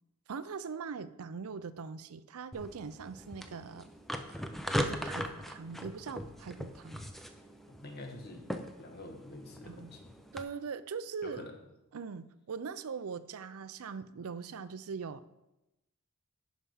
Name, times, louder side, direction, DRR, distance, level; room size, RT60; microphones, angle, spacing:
voice 1, 0.3-3.9 4.8-7.0 9.6-9.9 10.3-11.4 11.9-15.3, right 5 dB, 75° right, 14 dB, 0.5 m, -41 dB
sound 1, 2.5-10.4, equal, ahead, 0.5 m, -40 dB
voice 2, 7.7-8.5 8.8-10.1 11.2-11.5, left 1 dB, 45° left, 4 dB, 1.3 m, -46 dB
11.0 x 4.8 x 5.5 m, 0.94 s
head